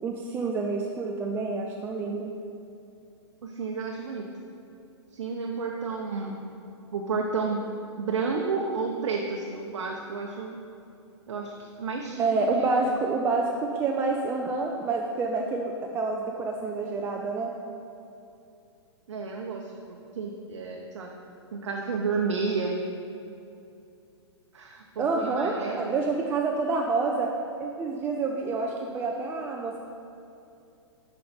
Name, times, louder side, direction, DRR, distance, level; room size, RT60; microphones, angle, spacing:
voice 1, 0.0-2.3 12.2-17.6 25.0-27.3 27.6-29.8, right 3 dB, 15° right, 1 dB, 0.3 m, -28 dB
voice 2, 3.4-4.3 5.1-6.4 6.9-7.6 8.0-10.6 11.3-13.0 19.1-21.1 21.5-22.8 24.5-26.0, right 4 dB, 70° right, 1 dB, 0.7 m, -31 dB
6.3 x 5.3 x 4.3 m, 2.7 s
hypercardioid pair, 125°, 15 cm